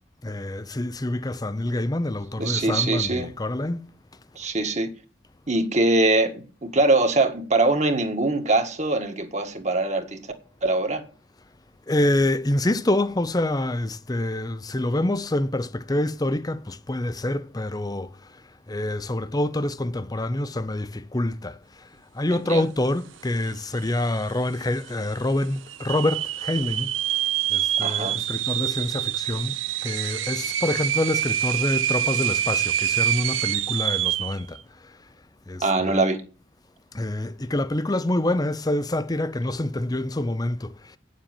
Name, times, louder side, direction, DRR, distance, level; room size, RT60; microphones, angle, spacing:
voice 1, 0.2-3.9 11.9-18.2 18.7-21.9 22.1-26.9 27.5-29.5 29.8-34.6 35.5-36.0 36.9-41.0, left 1 dB, 20° left, 0.6 m, -26 dB
voice 2, 2.4-3.3 4.3-4.9 5.5-10.2 10.6-11.0 22.3-22.7 27.8-28.2 35.6-36.2, right 2 dB, 35° right, 1.7 m, -23 dB
sound 1, 23.5-23.6 23.8-24.4 24.9-25.0 25.7-34.4, right 12 dB, 85° right, 0.6 m, -26 dB
9.1 x 7.4 x 8.9 m
head